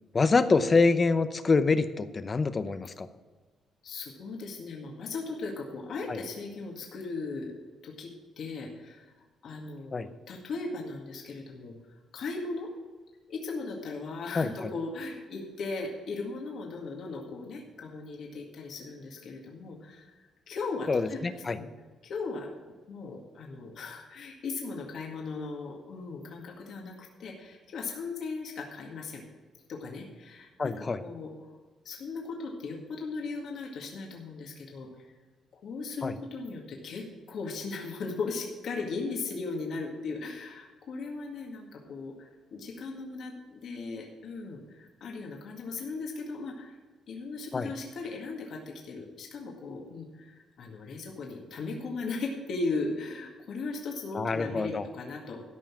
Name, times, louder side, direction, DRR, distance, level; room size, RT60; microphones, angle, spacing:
voice 1, 0.1-3.1 6.1-6.2 9.9-10.1 14.4-14.7 20.9-21.6 30.6-31.0 36.0-36.1 47.5-47.7 54.1-54.9, left 4 dB, 35° left, 12 dB, 0.7 m, -26 dB
voice 2, 3.8-7.5 7.8-9.1 9.4-11.7 12.1-12.7 13.3-20.1 20.5-21.7 22.0-22.5 22.9-29.2 29.7-31.3 31.9-34.9 35.6-46.8 47.1-55.4, left 3 dB, 65° left, 0 dB, 2.0 m, -37 dB
13.5 x 5.5 x 7.3 m, 1.4 s
cardioid pair, 90°, 0 cm